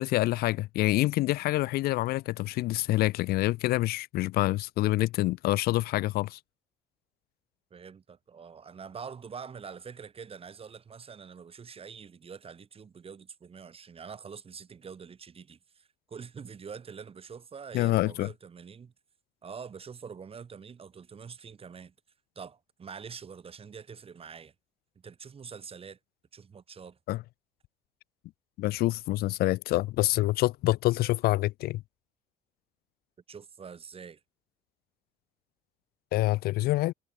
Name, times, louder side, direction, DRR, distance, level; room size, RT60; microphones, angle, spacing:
voice 1, 0.0-6.4 17.7-18.3 27.1-27.2 28.6-31.8 36.1-36.9, left 17 dB, 65° left, 0.4 m, -26 dB
voice 2, 7.7-18.9 19.4-21.9 22.4-24.5 25.0-26.0 26.3-27.0 33.3-34.2, right 6 dB, 35° right, 3.6 m, -45 dB
cardioid pair, 100°, 17 cm